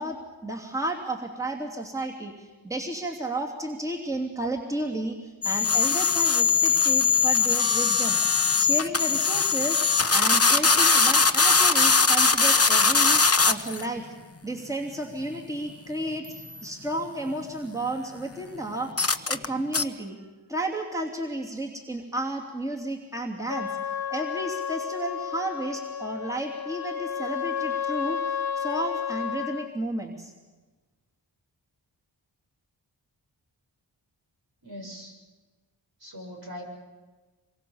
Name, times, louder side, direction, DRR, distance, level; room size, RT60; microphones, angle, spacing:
voice 1, 0.0-9.8 10.1-14.1 14.4-20.2 20.5-23.8 24.1-30.3, right 1 dB, 5° right, -1 dB, 3.0 m, -32 dB
sound 1, 5.4-13.8 16.2-16.6 19.0-19.5 19.7-19.8, left 4 dB, 30° left, 1.2 m, -21 dB
Trumpet, 23.5-29.7, left 8 dB, 50° left, 1.7 m, -32 dB
voice 2, 34.6-35.1 36.0-36.6, left 1 dB, 55° right, 1 dB, 7.3 m, -40 dB
27.0 x 23.5 x 7.2 m, 1.3 s
wide cardioid pair, 65°, 45 cm